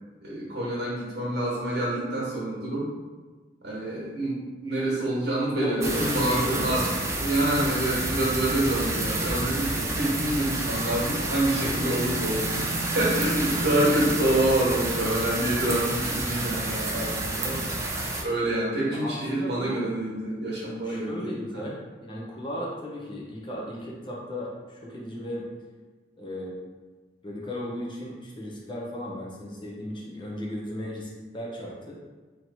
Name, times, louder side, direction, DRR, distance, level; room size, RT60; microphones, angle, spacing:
voice 1, 0.2-2.9 3.6-17.6 18.2-21.3, right 1 dB, 65° right, -5 dB, 1.4 m, -27 dB
voice 2, 5.5-7.0 13.8-14.1 18.9-19.8 20.8-25.4 26.2-26.6 27.2-32.0, left 1 dB, 25° left, -3 dB, 0.8 m, -35 dB
sound 1, 5.8-18.2, right 2 dB, 15° right, 0.4 m, -29 dB
3.0 x 3.0 x 4.0 m, 1.3 s
head